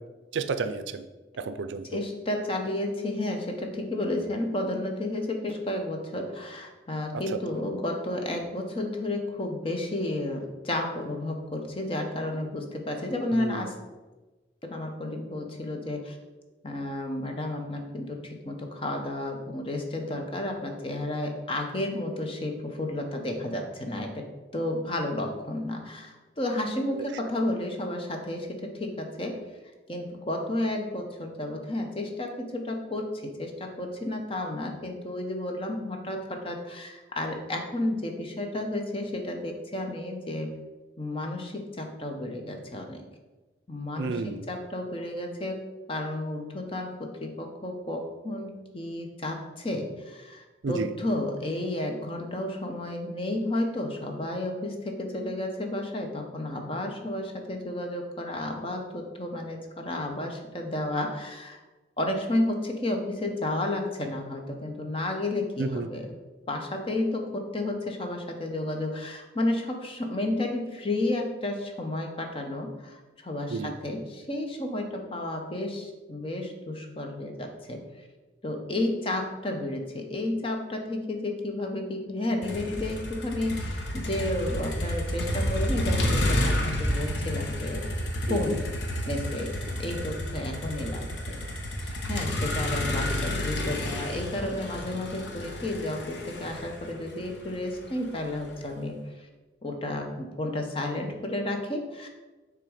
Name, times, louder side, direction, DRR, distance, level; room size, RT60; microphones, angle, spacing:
voice 1, 0.3-1.0 1.4-2.0 7.1-7.2 13.3-13.7 27.0-27.1 44.0-44.4 50.6-50.9 65.6-65.9 73.5-73.7 88.3-88.6, right 4 dB, 80° right, 11 dB, 0.4 m, -31 dB
voice 2, 1.9-13.7 14.6-16.2 16.6-24.3 24.5-29.4 29.9-40.5 41.0-43.0 43.7-45.6 45.9-61.6 62.0-66.1 66.5-77.8 78.4-87.8 88.3-88.6 89.1-89.5 89.8-91.4 91.8-98.9 99.6-102.1, left 1 dB, 30° left, 3 dB, 0.8 m, -32 dB
Motor vehicle (road), 82.4-98.5, left 1 dB, 70° left, 1.0 m, -30 dB
6.6 x 3.6 x 4.9 m, 1.2 s
head